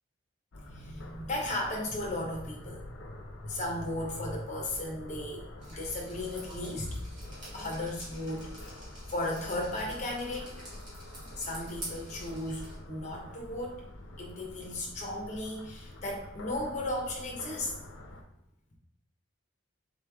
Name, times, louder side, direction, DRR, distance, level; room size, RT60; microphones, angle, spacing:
sound 1, 0.5-18.2, left 1 dB, 65° left, 0.6 m, -47 dB
voice 1, 0.6-2.8 3.1-7.0 7.5-8.8 9.1-10.7 11.4-13.9 14.2-17.7, left 1 dB, 35° left, -1 dB, 0.9 m, -36 dB
Drip, 5.6-12.8, right 1 dB, 35° right, 1.6 m, -46 dB
4.1 x 3.3 x 3.4 m, 0.73 s
head